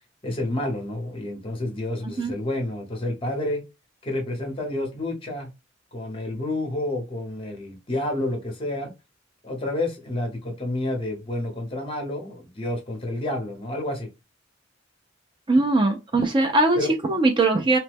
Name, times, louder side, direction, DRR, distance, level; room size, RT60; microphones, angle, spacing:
voice 1, 0.2-3.6 4.0-5.5 5.9-8.9 9.4-14.1 16.8-16.9, left 1 dB, 30° left, 0.9 m, -29 dB
voice 2, 15.5-16.8 17.0-17.8, right 2 dB, 25° right, 0.4 m, -20 dB
3.0 x 2.2 x 3.4 m
head